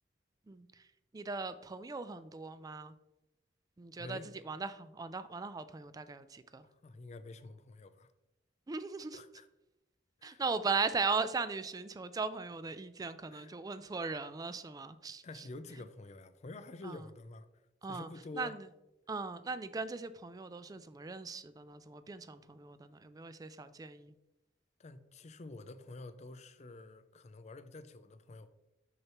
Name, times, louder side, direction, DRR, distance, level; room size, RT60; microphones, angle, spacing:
voice 1, 0.5-0.9 1.1-2.9 3.8-6.7 8.7-9.2 10.2-15.4 16.8-17.0 17.8-18.1 18.3-18.7 19.1-24.1, right 4 dB, 20° right, 0.3 m, -38 dB
voice 2, 4.0-4.3 6.7-8.1 9.1-9.5 10.2-10.4 13.3-13.6 15.2-17.5 17.9-18.6 24.8-28.5, left 2 dB, 40° left, 0.4 m, -48 dB
6.4 x 5.8 x 3.0 m
head